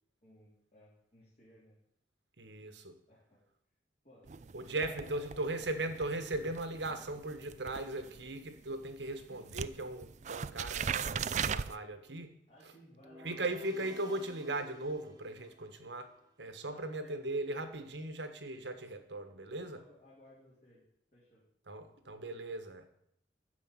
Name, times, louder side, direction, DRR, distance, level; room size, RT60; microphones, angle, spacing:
voice 1, 0.2-1.8 3.1-3.4 4.0-4.3 4.7-5.6 9.3-9.4 12.5-13.3 16.7-17.2 19.7-20.8 21.1-21.4, equal, 40° left, -8 dB, 4.0 m, -59 dB
voice 2, 2.4-3.0 4.5-12.3 12.6-12.7 13.2-16.1 16.4-19.8 21.7-22.9, right 2 dB, 75° right, 8 dB, 1.4 m, -38 dB
sound 1, 4.3-9.2 9.5-11.7, right 7 dB, 40° right, 0.4 m, -39 dB
sound 2, 13.0-16.2, left 1 dB, 20° right, 1.2 m, -53 dB
13.0 x 5.0 x 8.9 m, 0.72 s
head